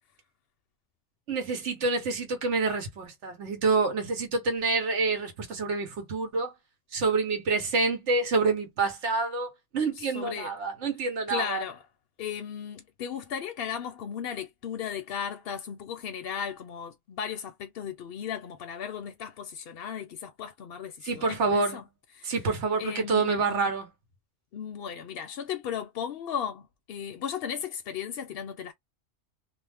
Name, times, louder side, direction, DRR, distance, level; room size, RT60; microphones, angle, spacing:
voice 1, 1.3-6.5 6.9-11.6 21.0-21.8 22.2-23.9, right 4 dB, 80° right, 1.2 m, -27 dB
voice 2, 10.0-10.5 11.3-11.8 12.2-21.8 22.2-22.3 22.8-23.7 24.5-28.7, left 8 dB, 65° left, 0.7 m, -36 dB
2.6 x 2.0 x 3.3 m
omnidirectional pair, 1.2 m